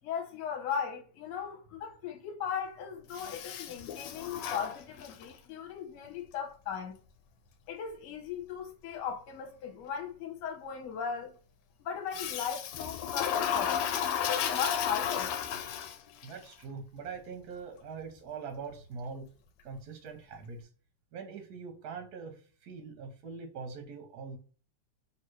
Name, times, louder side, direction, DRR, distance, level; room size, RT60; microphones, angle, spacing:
voice 1, 0.0-6.9 7.7-11.3 11.8-13.8 14.2-15.3, left 7 dB, 60° left, 1.4 m, -37 dB
Toilet flush, 3.1-5.4 12.1-16.3, left 8 dB, 80° left, 1.4 m, -33 dB
voice 2, 16.2-19.3 19.6-20.7 21.1-24.4, right 5 dB, 65° right, 1.0 m, -43 dB
3.6 x 2.7 x 4.5 m
omnidirectional pair, 2.4 m